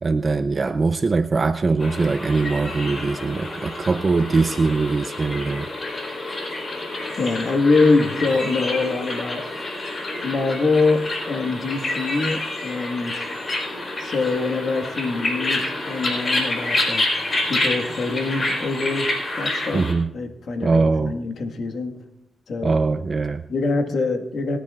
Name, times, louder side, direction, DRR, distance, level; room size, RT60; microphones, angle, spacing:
voice 1, 0.0-5.7 19.7-20.1 20.6-21.1 22.6-23.4, right 4 dB, 50° right, 10 dB, 0.5 m, -21 dB
sound 1, 1.8-19.9, left 2 dB, 45° left, 3.8 m, -28 dB
voice 2, 7.2-9.4 10.2-13.2 14.0-17.1 17.4-19.1 19.4-19.8 20.1-21.9 22.5-22.7 23.5-24.6, left 3 dB, 75° left, 6 dB, 1.5 m, -24 dB
27.0 x 10.0 x 2.4 m, 0.88 s
cardioid pair, 65°, 0 cm